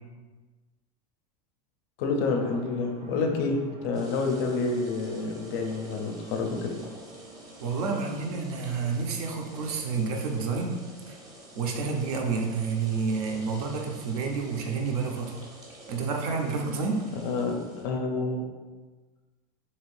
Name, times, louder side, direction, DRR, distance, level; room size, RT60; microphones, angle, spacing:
voice 1, 2.0-6.8 17.2-18.5, left 3 dB, 40° left, 3 dB, 0.4 m, -28 dB
sound 1, 2.2-12.0, right 1 dB, 85° right, 1.0 m, -49 dB
sound 2, 3.9-17.9, right 1 dB, 15° right, 0.5 m, -49 dB
voice 2, 7.6-10.8 11.1-11.2 11.6-15.4 15.9-17.0, right 4 dB, 70° right, 2 dB, 0.6 m, -29 dB
2.8 x 2.5 x 3.2 m, 1.3 s
supercardioid pair, 165°, 20 cm